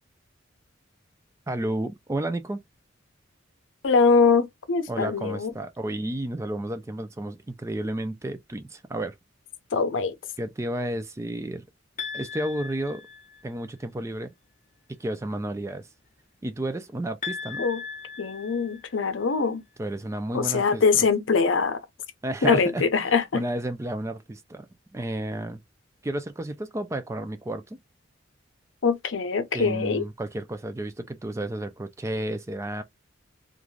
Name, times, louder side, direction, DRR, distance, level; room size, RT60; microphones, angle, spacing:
voice 1, 1.5-2.6 4.9-9.1 10.4-11.7 12.1-13.1 13.4-14.3 15.0-15.9 16.4-17.6 19.8-21.0 22.2-24.7 24.9-25.6 26.0-27.8 29.5-32.8, right 1 dB, 15° right, 0.4 m, -32 dB
voice 2, 3.8-5.5 9.7-10.1 17.6-17.8 18.2-19.6 20.3-21.8 22.4-23.4 28.8-30.0, left 5 dB, 80° left, 0.6 m, -23 dB
sound 1, 12.0-13.6 17.2-19.2, left 5 dB, 40° left, 0.7 m, -37 dB
3.2 x 2.5 x 2.3 m
head